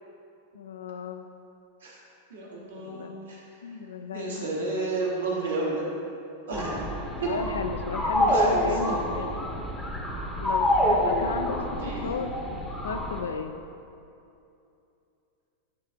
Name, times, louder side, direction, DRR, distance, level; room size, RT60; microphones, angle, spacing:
voice 1, 0.5-1.3 2.6-3.1 3.6-4.5 7.3-9.5 10.4-11.6 11.8-13.5, left 5 dB, 65° left, 7 dB, 0.4 m, -34 dB
voice 2, 2.3-3.4 4.1-5.9 6.5-6.8 7.2-7.3 8.3-9.0 11.8-12.1, right 3 dB, 70° right, -4 dB, 1.4 m, -32 dB
sound 1, 6.5-13.2, equal, 5° left, 0.8 m, -27 dB
9.6 x 3.3 x 3.8 m, 2.6 s
figure-of-eight pair, 90°, 0 cm